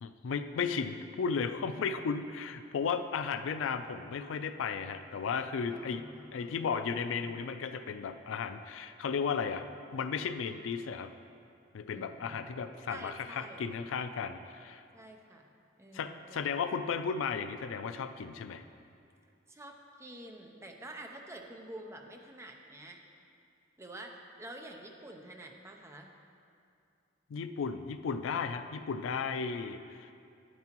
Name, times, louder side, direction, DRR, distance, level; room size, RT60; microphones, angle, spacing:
voice 1, 0.0-6.0 6.3-9.6 9.9-11.1 11.7-14.8 15.9-18.6 27.3-30.1, left 6 dB, 80° left, 10 dB, 0.4 m, -34 dB
voice 2, 5.7-6.7 11.9-12.5 12.9-13.7 14.9-15.5 15.8-16.5 19.5-23.0 23.8-26.1, right 1 dB, 15° right, 2 dB, 0.6 m, -48 dB
9.3 x 8.7 x 3.0 m, 2.4 s
head